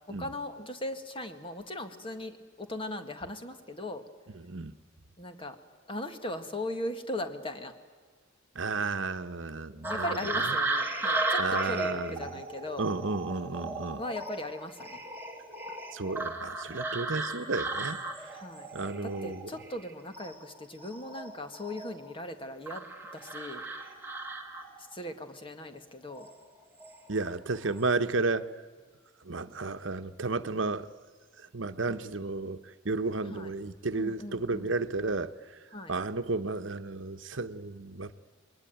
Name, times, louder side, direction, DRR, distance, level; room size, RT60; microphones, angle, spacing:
voice 1, 0.2-4.0 5.2-5.5 5.9-7.7 9.9-12.9 14.0-15.0 18.3-18.7 19.0-22.8 23.1-23.6 24.9-26.3 33.3-33.5 33.9-34.7 35.7-35.9, left 1 dB, 25° left, 1.8 m, -38 dB
voice 2, 4.4-4.7 8.5-10.2 10.4-10.6 11.4-12.3 12.8-14.0 15.9-18.0 18.7-19.5 27.1-28.5 29.2-30.9 31.5-32.6 32.8-35.3 35.9-38.1, right 3 dB, 70° right, 1.0 m, -32 dB
sound 1, 9.8-19.8 20.1-22.1 22.7-24.9 26.1-26.3 26.8-27.3 27.5-27.8, right 2 dB, 10° right, 2.4 m, -35 dB
28.0 x 21.5 x 9.3 m
head